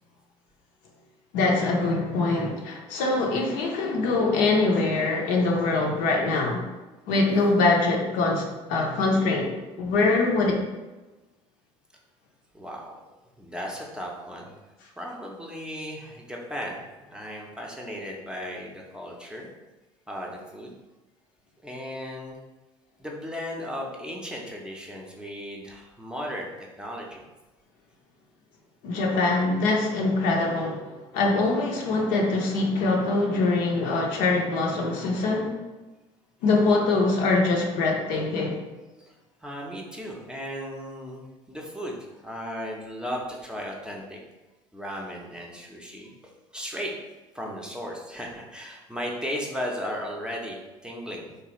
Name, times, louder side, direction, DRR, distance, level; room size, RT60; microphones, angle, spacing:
voice 1, 1.3-6.7 7.1-9.5 9.8-10.6 28.8-35.6 36.4-38.6, left 3 dB, 65° left, 0 dB, 0.6 m, -23 dB
voice 2, 12.5-12.9 13.4-16.8 17.1-19.5 20.1-20.7 21.6-22.4 23.0-27.3 39.1-44.2 44.7-46.9 47.3-51.4, equal, 5° right, -1 dB, 0.6 m, -36 dB
3.2 x 2.3 x 3.0 m, 1.1 s
hypercardioid pair, 60°, 16 cm